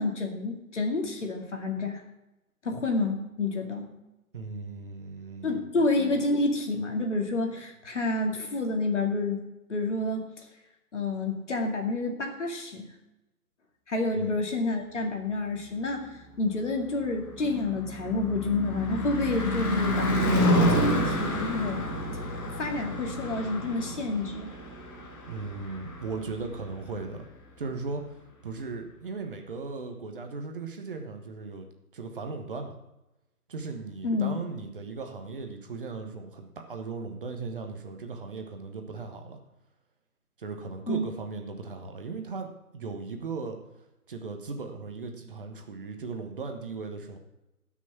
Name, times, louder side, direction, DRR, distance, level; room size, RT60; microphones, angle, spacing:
voice 1, 0.0-2.0 2.6-3.9 5.4-9.4 9.7-10.2 10.9-12.9 13.9-21.8 22.6-24.6 34.0-34.4 40.9-41.0, left 2 dB, 50° left, 2 dB, 2.4 m, -29 dB
voice 2, 4.3-5.6 14.1-14.4 25.3-27.3 27.6-28.0 28.4-31.7 31.9-32.8 33.5-39.4 40.4-43.6 44.1-47.2, right 4 dB, 35° right, 4 dB, 1.3 m, -37 dB
Car passing by / Truck / Engine, 16.3-26.6, equal, 15° left, 1.4 m, -29 dB
17.5 x 6.4 x 5.9 m, 0.94 s
figure-of-eight pair, 145°, 45 cm